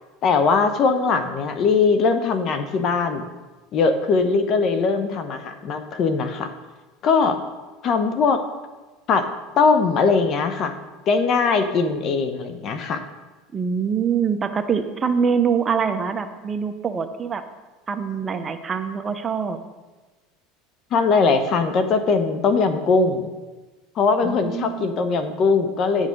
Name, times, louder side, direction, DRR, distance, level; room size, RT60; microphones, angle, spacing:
voice 1, 0.2-3.3 3.7-6.5 7.0-7.4 7.8-8.4 9.1-9.3 9.6-10.8 11.1-13.0 20.9-23.3 24.0-26.1, left 4 dB, 45° left, 9 dB, 1.0 m, -20 dB
voice 2, 13.5-17.4 17.9-19.6 24.2-25.1, right 6 dB, 25° right, 8 dB, 0.8 m, -24 dB
9.8 x 6.4 x 5.3 m, 1.2 s
supercardioid pair, 100°, 0 cm